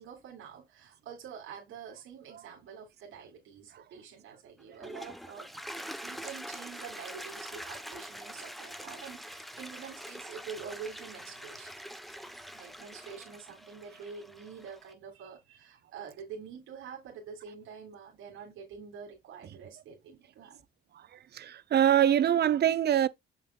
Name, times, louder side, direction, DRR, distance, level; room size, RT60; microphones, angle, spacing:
voice 1, 0.0-5.5 6.0-11.7 12.6-20.6, right 6 dB, 85° right, 3.2 m, -46 dB
Toilet flush, 4.6-14.9, equal, ahead, 0.9 m, -44 dB
voice 2, 20.9-23.1, right 10 dB, 55° right, 0.7 m, -25 dB
7.4 x 6.7 x 2.4 m
cardioid pair, 90°, 20 cm